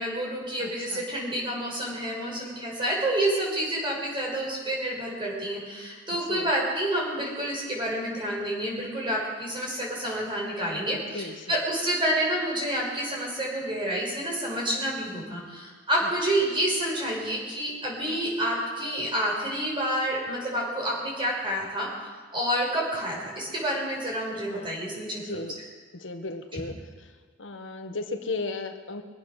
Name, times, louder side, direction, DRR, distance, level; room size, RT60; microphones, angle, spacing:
voice 1, 0.0-21.9 22.3-25.4 26.5-26.8, right 1 dB, 25° right, -3 dB, 6.0 m, -29 dB
voice 2, 0.6-1.0 6.3-6.5 11.1-11.6 24.5-24.8 25.2-25.6 25.9-27.1 27.4-29.0, left 3 dB, 75° left, 6 dB, 1.3 m, -35 dB
24.0 x 8.9 x 6.4 m, 1.5 s
head